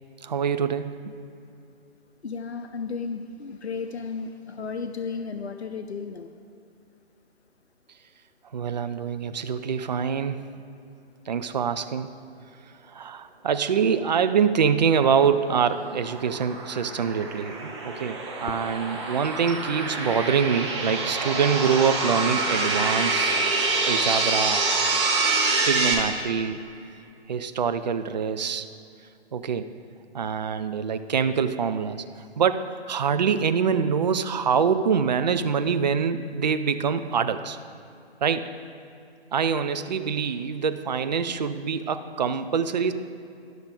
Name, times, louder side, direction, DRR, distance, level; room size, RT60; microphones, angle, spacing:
voice 1, 0.2-1.0 8.5-10.5 11.3-12.1 12.9-23.3 23.8-24.6 25.6-26.6 27.3-28.7 29.3-29.7 30.1-32.0 32.4-37.6 38.2-38.5 39.3-42.9, right 6 dB, 45° right, 10 dB, 0.4 m, -25 dB
voice 2, 2.2-6.3, left 5 dB, 85° left, 8 dB, 0.5 m, -34 dB
sound 1, 15.1-25.9, right 3 dB, 25° right, 1.0 m, -26 dB
10.5 x 6.4 x 4.9 m, 2.6 s
figure-of-eight pair, 140°, 32 cm